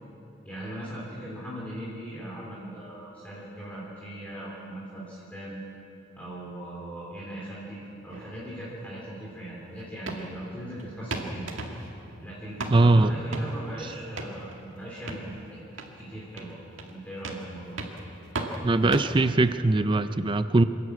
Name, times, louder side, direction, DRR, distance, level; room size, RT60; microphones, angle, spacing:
voice 1, 0.4-5.6 6.1-11.5 12.2-15.6 15.9-16.6 16.9-17.8, right 1 dB, 5° left, -6 dB, 3.4 m, -39 dB
sound 1, 8.1-19.6, right 2 dB, 70° right, 2.0 m, -39 dB
voice 2, 12.7-13.1 18.6-20.6, right 2 dB, 25° right, 11 dB, 0.4 m, -21 dB
28.0 x 11.0 x 8.5 m, 2.9 s
head